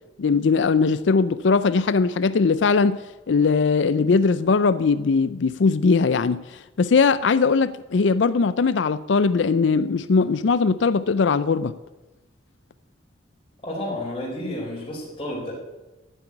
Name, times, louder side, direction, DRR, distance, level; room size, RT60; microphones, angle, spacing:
voice 1, 0.2-3.0 3.3-11.8, left 4 dB, 75° left, 0.5 m, -20 dB
voice 2, 13.6-15.5, left 1 dB, 30° left, 4.4 m, -31 dB
13.5 x 7.9 x 9.7 m
head